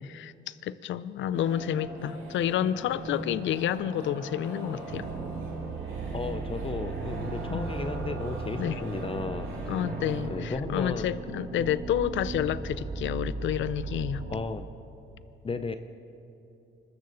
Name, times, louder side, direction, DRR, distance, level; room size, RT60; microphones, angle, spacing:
voice 1, 0.1-5.1 7.5-7.7 8.6-8.8 9.7-14.2, left 10 dB, 75° left, 16 dB, 0.6 m, -30 dB
sound 1, 1.3-10.2, right 1 dB, 90° right, 4.9 m, -39 dB
sound 2, 4.9-14.5, right 4 dB, 65° right, 1.7 m, -37 dB
voice 2, 6.1-10.0 10.3-11.1 14.3-14.7 15.4-15.8, left 4 dB, 30° left, 9 dB, 0.7 m, -34 dB
25.0 x 13.5 x 4.0 m, 2.8 s
cardioid pair, 90°, 20 cm